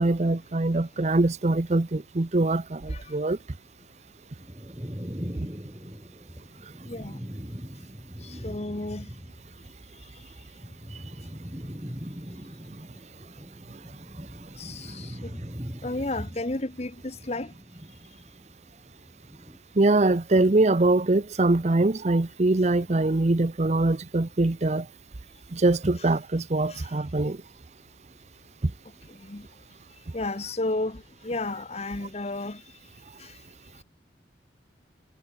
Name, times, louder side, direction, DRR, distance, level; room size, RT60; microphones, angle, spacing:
voice 1, 0.0-3.4 19.8-24.8 25.5-27.4, right 2 dB, 40° right, 0.7 m, -23 dB
sound 1, 4.4-9.7 10.0-18.6 18.9-19.6, equal, 20° right, 3.8 m, -41 dB
voice 2, 6.9-7.2 8.2-9.1 14.6-15.3 15.8-17.5 26.0-26.1 26.7-26.9 29.2-29.5 30.1-32.6 33.2-33.4, left 2 dB, 35° left, 1.2 m, -33 dB
head